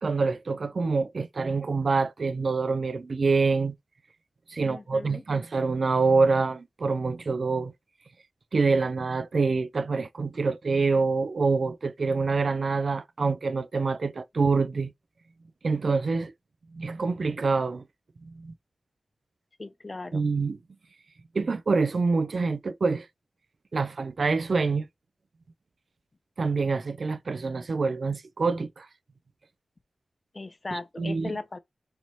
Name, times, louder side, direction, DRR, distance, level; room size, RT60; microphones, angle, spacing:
voice 1, 0.0-3.7 4.5-7.7 8.5-14.9 15.6-16.3 16.7-17.8 18.2-18.5 20.1-20.6 21.3-23.1 23.7-24.9 26.4-28.9 30.7-31.4, right 4 dB, 65° right, 0.4 m, -26 dB
voice 2, 4.6-5.2 19.6-20.2 30.3-31.6, left 3 dB, 40° left, 0.6 m, -37 dB
4.5 x 3.0 x 2.7 m
cardioid pair, 55°, 0 cm